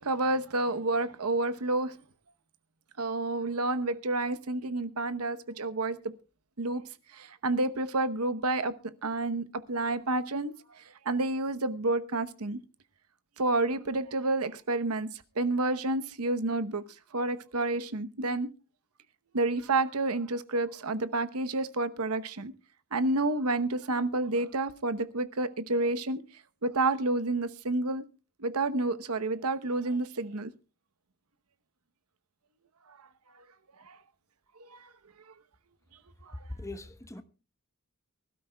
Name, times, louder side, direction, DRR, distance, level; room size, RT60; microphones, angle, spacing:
voice 1, 0.0-2.0 3.0-6.1 6.6-6.8 7.1-8.7 9.0-12.6 13.4-16.8 17.1-18.5 19.3-22.5 22.9-26.2 26.6-28.0 28.4-30.5 33.9-34.0 34.6-34.9 36.3-36.4, right 2 dB, 80° right, 1.0 m, -29 dB
voice 2, 36.5-37.2, left 2 dB, 15° left, 1.0 m, -40 dB
24.0 x 12.5 x 2.3 m
head